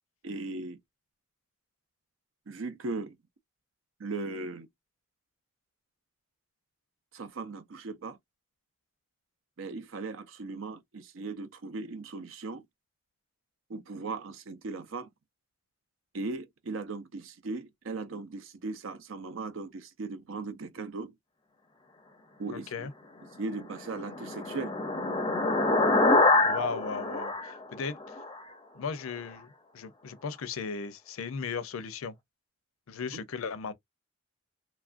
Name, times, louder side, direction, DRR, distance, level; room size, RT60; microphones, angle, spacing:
voice 1, 0.2-0.8 2.5-3.2 4.0-4.7 7.1-8.2 9.6-12.6 13.7-15.1 16.1-21.1 22.4-22.9 23.2-24.7 33.1-33.2, right 3 dB, 70° right, 0.6 m, -38 dB
voice 2, 22.5-22.9 26.4-28.2 28.7-32.1 32.9-33.7, left 5 dB, 80° left, 0.5 m, -36 dB
sound 1, 23.6-28.4, left 2 dB, 20° left, 0.5 m, -26 dB
3.1 x 2.4 x 2.4 m
head